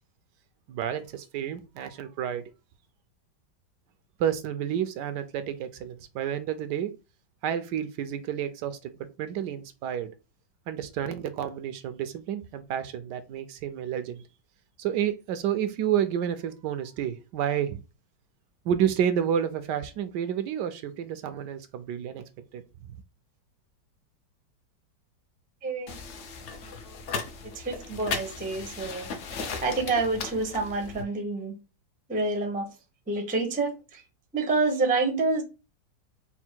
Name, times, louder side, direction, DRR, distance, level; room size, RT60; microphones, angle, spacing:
voice 1, 0.7-2.4 4.2-6.9 7.4-10.1 10.7-14.2 14.8-17.8 18.6-22.2 22.5-22.6, right 9 dB, 75° right, 1.2 m, -30 dB
voice 2, 25.6-26.0 26.9-27.0 27.5-29.1 29.6-31.5 32.1-32.7 33.1-34.0 34.3-35.4, right 3 dB, 10° right, 0.4 m, -28 dB
sound 1, 25.9-31.0, left 5 dB, 60° left, 0.8 m, -37 dB
4.3 x 2.2 x 4.4 m
omnidirectional pair, 1.9 m